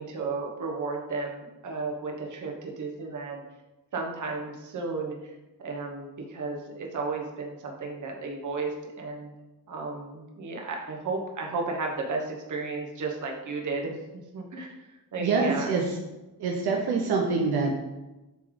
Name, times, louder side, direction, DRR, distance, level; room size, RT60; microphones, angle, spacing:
voice 1, 0.0-3.4 3.9-5.3 5.6-9.3 9.7-15.7, right 3 dB, 50° right, 1 dB, 1.3 m, -34 dB
voice 2, 15.2-16.0 16.4-17.7, right 4 dB, 75° right, -1 dB, 1.0 m, -25 dB
8.2 x 3.3 x 4.0 m, 1.0 s
cardioid pair, 110°, 39 cm